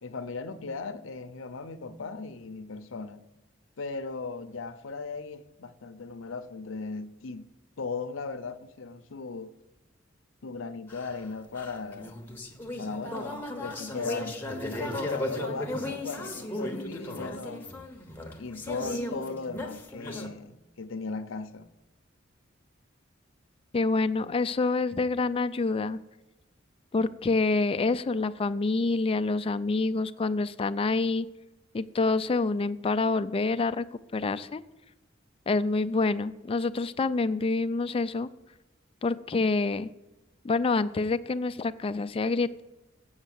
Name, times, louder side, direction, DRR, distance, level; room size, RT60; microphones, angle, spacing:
voice 1, 0.0-3.2 3.8-7.5 7.8-9.5 10.4-12.2 12.8-14.4 14.7-17.6 18.4-21.7, left 4 dB, 80° left, 0.6 m, -37 dB
sound 1, 10.9-20.3, left 1 dB, 10° left, 0.9 m, -36 dB
voice 2, 23.7-26.0 26.9-31.3 31.7-33.9 34.1-34.6 35.5-38.3 39.0-39.9 40.4-42.6, left 3 dB, 30° left, 0.4 m, -27 dB
8.0 x 6.3 x 7.5 m
head